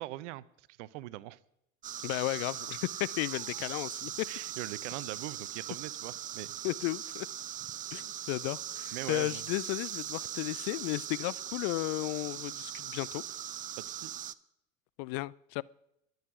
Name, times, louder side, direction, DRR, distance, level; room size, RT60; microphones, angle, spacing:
voice 1, 0.0-1.4 4.3-6.6 8.9-9.4 13.8-14.1, right 17 dB, 60° right, 0.8 m, -41 dB
sound 1, 1.8-14.3, right 11 dB, 20° right, 0.4 m, -40 dB
voice 2, 2.0-4.3 6.6-7.3 7.9-13.2 15.0-15.6, left 22 dB, 50° left, 0.5 m, -34 dB
23.5 x 8.1 x 5.0 m
hypercardioid pair, 80°, 40 cm